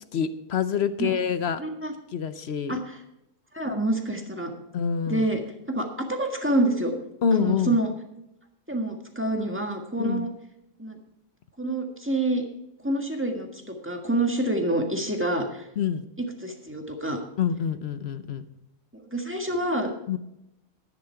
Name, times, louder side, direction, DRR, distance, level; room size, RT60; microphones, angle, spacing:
voice 1, 0.1-1.6 2.1-2.8 4.7-5.2 7.2-7.8 10.0-10.3 15.8-16.0 17.4-18.4 20.1-20.2, left 7 dB, 60° left, 12 dB, 0.8 m, -26 dB
voice 2, 1.6-1.9 2.7-3.0 3.5-4.5 5.1-5.4 5.7-7.0 7.3-7.9 8.7-10.3 10.8-11.0 11.6-12.5 12.8-15.7 16.2-17.2 18.9-19.9, right 1 dB, 10° right, 3 dB, 1.6 m, -27 dB
12.0 x 10.0 x 4.5 m, 0.85 s
omnidirectional pair, 1.4 m